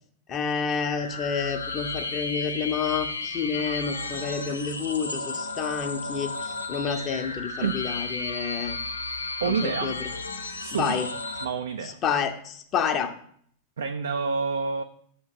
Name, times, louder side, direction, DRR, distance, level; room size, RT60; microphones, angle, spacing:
voice 1, 0.3-8.8 9.4-10.1 10.7-11.1 11.8-13.1, left 6 dB, 30° left, 7 dB, 0.7 m, -29 dB
sound 1, 0.8-11.4, left 3 dB, 80° left, 0.5 m, -33 dB
voice 2, 9.4-10.0 10.6-11.1 11.4-12.0 13.8-14.8, right 5 dB, 65° right, 7 dB, 0.3 m, -28 dB
6.3 x 2.9 x 5.3 m, 0.62 s
figure-of-eight pair, 90°, 0 cm